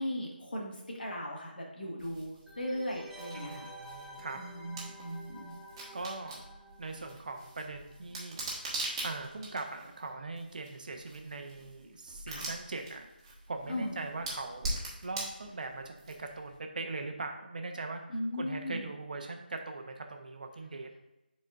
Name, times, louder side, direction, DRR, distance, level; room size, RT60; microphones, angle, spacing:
voice 1, 0.0-3.7 4.3-5.5 12.3-12.5 13.7-14.0 18.1-18.9, left 1 dB, 70° left, -2 dB, 2.0 m, -37 dB
sound 1, 2.0-16.5, right 2 dB, 25° right, 1.6 m, -43 dB
sound 2, 2.5-7.9 8.2-8.3, equal, 5° right, 0.6 m, -50 dB
voice 2, 3.3-4.4 5.9-6.4 6.8-8.4 9.0-18.0 18.4-20.9, right 3 dB, 55° right, 4 dB, 0.9 m, -41 dB
11.0 x 4.3 x 2.5 m, 0.96 s
figure-of-eight pair, 160°, 6 cm